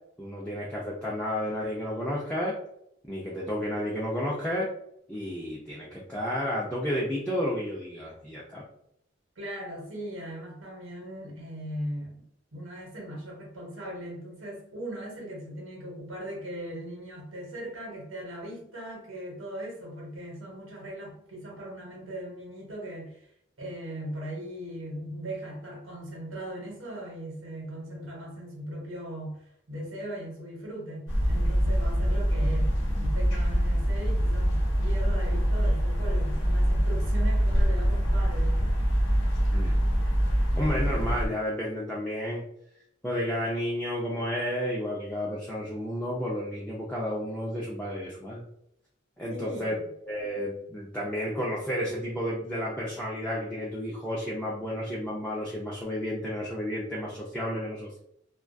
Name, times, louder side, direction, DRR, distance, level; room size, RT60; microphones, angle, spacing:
voice 1, 0.2-2.6 3.1-4.7 5.1-8.6 39.5-39.8 40.6-42.4 43.0-48.4 49.2-49.8 50.1-58.0, equal, 5° left, -5 dB, 0.4 m, -31 dB
voice 2, 9.4-12.1 12.5-23.3 23.6-38.7 49.3-49.8, right 1 dB, 85° right, -3 dB, 0.9 m, -39 dB
sound 1, 31.1-41.3, equal, 70° left, 0.8 m, -24 dB
2.2 x 2.2 x 2.5 m, 0.73 s
head